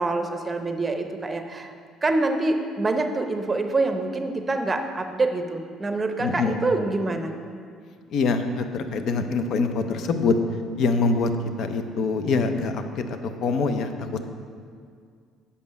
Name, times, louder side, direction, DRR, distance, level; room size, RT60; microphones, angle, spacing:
voice 1, 0.0-1.7 2.0-7.3, right 2 dB, 25° right, 6 dB, 0.7 m, -26 dB
voice 2, 6.2-6.6 8.1-10.3 10.8-11.3 11.6-13.0 13.4-14.3, left 4 dB, 65° left, 8 dB, 0.6 m, -24 dB
6.9 x 5.4 x 5.3 m, 2.1 s
supercardioid pair, 85°, 0 cm